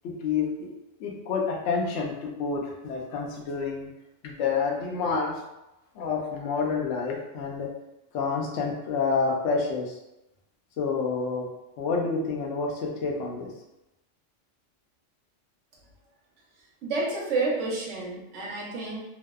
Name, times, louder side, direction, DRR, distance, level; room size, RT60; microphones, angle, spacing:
voice 1, 0.0-0.7 1.0-3.9 4.2-5.4 6.0-7.7 8.1-10.0 10.8-11.5 11.8-13.5, left 4 dB, 75° left, -1 dB, 0.8 m, -28 dB
voice 2, 16.8-19.0, right 3 dB, 75° right, -3 dB, 1.0 m, -29 dB
2.7 x 2.0 x 2.2 m, 0.90 s
omnidirectional pair, 1.3 m